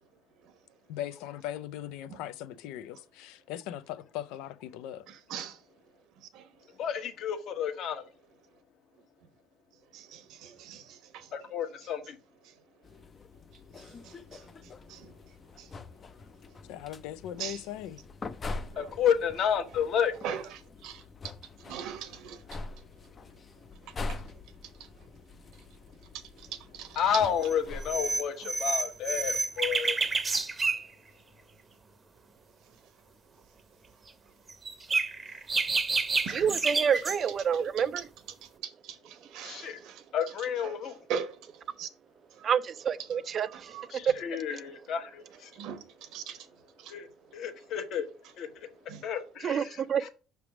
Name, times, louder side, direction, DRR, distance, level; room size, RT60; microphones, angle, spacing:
voice 1, 0.9-5.1 16.7-18.0, left 12 dB, 85° left, 0.5 m, -39 dB
voice 2, 6.8-8.0 11.3-12.2 18.8-20.1 26.9-30.0 39.4-39.8 40.1-41.0 43.9-45.5 46.9-47.1 47.3-48.1 48.4-48.7 49.0-50.1, left 8 dB, 55° left, 1.1 m, -31 dB
voice 3, 9.9-11.3 13.7-14.4 14.9-15.1 15.6-15.7 17.4-17.6 18.7-18.9 20.2-20.4 20.8-21.0 21.6-22.4 26.4-27.0 36.2-36.4 38.4-40.0 41.1-41.3 41.8-41.9 43.5-43.9 45.5-46.4 46.8-46.9 48.9-49.0, right 7 dB, 70° right, 1.0 m, -40 dB
sound 1, 12.8-28.2, left 3 dB, 25° left, 0.5 m, -44 dB
sound 2, 27.4-27.5 27.8-30.9 34.5-37.2, right 4 dB, 20° right, 0.8 m, -29 dB
voice 4, 36.3-38.1 42.4-43.8 44.0-44.1 49.4-50.1, right 7 dB, 35° right, 0.4 m, -28 dB
5.9 x 3.4 x 5.9 m
cardioid pair, 140°, 0 cm